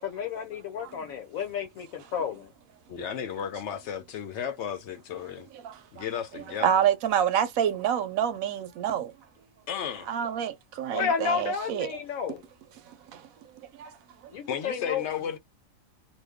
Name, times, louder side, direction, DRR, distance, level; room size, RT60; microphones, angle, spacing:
voice 1, 0.0-2.5 10.9-12.5 14.3-15.0, left 7 dB, 85° left, 1.3 m, -31 dB
voice 2, 2.9-5.5 5.9-6.7 9.7-10.1 14.5-15.4, left 8 dB, 65° left, 0.9 m, -34 dB
voice 3, 5.6-6.0 6.3-9.1 10.1-12.0 12.9-13.3 13.8-14.0, right 9 dB, 85° right, 1.0 m, -28 dB
2.6 x 2.3 x 3.5 m
omnidirectional pair, 1.4 m